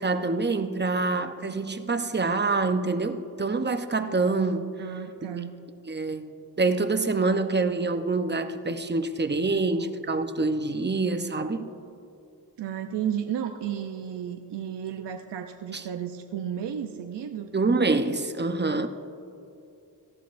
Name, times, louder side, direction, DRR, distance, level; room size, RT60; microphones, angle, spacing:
voice 1, 0.0-4.7 5.3-5.4 5.8-11.7 15.7-15.8 17.5-18.9, right 3 dB, 25° right, 9 dB, 0.7 m, -26 dB
voice 2, 4.8-5.6 9.7-9.8 12.6-17.5, right 9 dB, 75° right, 5 dB, 0.7 m, -33 dB
18.5 x 13.5 x 2.6 m, 2.7 s
cardioid pair, 65°, 43 cm